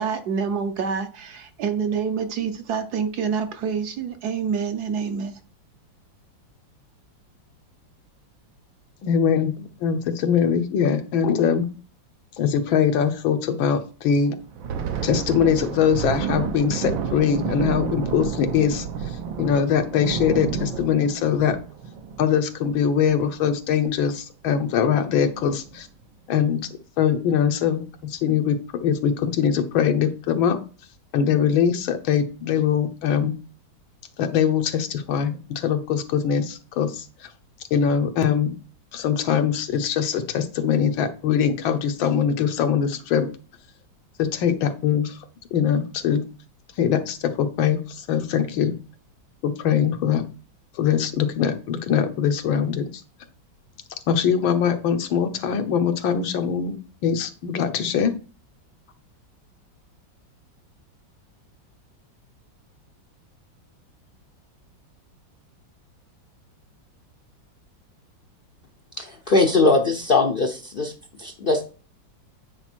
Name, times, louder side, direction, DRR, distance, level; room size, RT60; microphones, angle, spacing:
voice 1, 0.0-5.4, right 6 dB, 65° right, 8 dB, 1.1 m, -27 dB
voice 2, 9.0-11.7 12.4-14.4 15.0-21.6 22.2-25.9 26.3-26.7 27.0-30.6 31.1-33.4 34.2-37.3 37.7-38.5 38.9-43.3 44.2-45.2 45.5-46.2 46.8-48.8 49.4-50.3 50.8-53.0 54.1-56.8 57.0-58.1, left 8 dB, 90° left, 7 dB, 1.7 m, -22 dB
Thunder, 14.4-23.5 23.8-24.0 24.4-24.7 25.3-25.8, right 6 dB, 80° right, 1.6 m, -30 dB
voice 3, 69.0-70.9 71.2-71.7, left 3 dB, 70° left, 2 dB, 0.5 m, -20 dB
8.9 x 4.2 x 4.4 m, 0.36 s
omnidirectional pair, 2.1 m